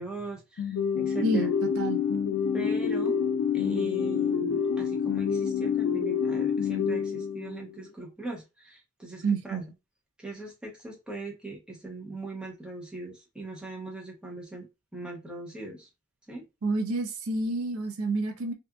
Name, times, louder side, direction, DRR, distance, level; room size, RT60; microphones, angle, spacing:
voice 1, 0.0-1.5 2.5-3.2 3.5-9.6 10.2-14.7 14.9-15.9 16.3-16.4, right 2 dB, 5° right, 0.6 m, -40 dB
sound 1, 0.6-7.7, left 7 dB, 75° left, 0.4 m, -27 dB
voice 2, 1.2-2.0 9.2-9.6 16.6-18.5, right 2 dB, 80° right, 0.5 m, -29 dB
2.7 x 2.4 x 2.3 m
head